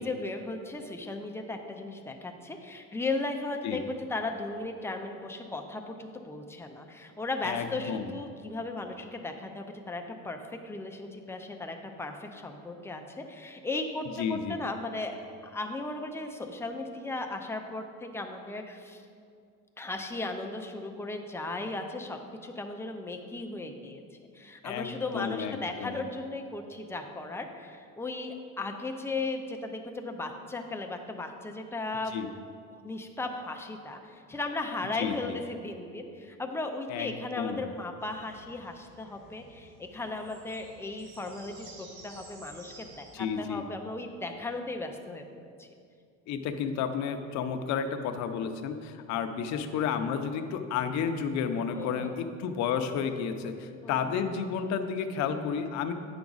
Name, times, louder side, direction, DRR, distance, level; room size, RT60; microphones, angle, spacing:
voice 1, 0.0-10.4 10.6-19.0 19.8-24.0 24.3-32.1 32.8-45.7 51.7-52.1 53.8-54.3, left 2 dB, 10° left, 3 dB, 0.4 m, -36 dB
voice 2, 7.4-8.1 14.2-14.5 24.6-26.0 32.1-32.3 35.0-35.4 36.9-37.6 43.1-43.7 46.3-55.9, left 7 dB, 60° left, 7 dB, 0.6 m, -32 dB
sound 1, 38.0-43.2, right 2 dB, 85° right, 1.7 m, -52 dB
9.5 x 6.0 x 3.9 m, 2.3 s
cardioid pair, 150°, 31 cm